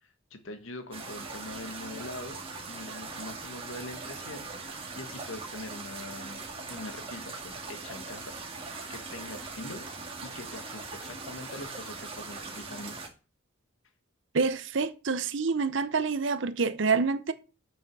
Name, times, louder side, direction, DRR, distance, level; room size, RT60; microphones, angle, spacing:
voice 1, 0.0-2.4 2.7-6.4 6.7-9.9 10.2-13.0, left 2 dB, 75° left, 1.4 m, -43 dB
sound 1, 0.9-13.1, right 3 dB, 25° right, 2.1 m, -41 dB
voice 2, 14.3-17.3, right 4 dB, 65° right, 0.7 m, -27 dB
7.1 x 5.8 x 6.1 m
head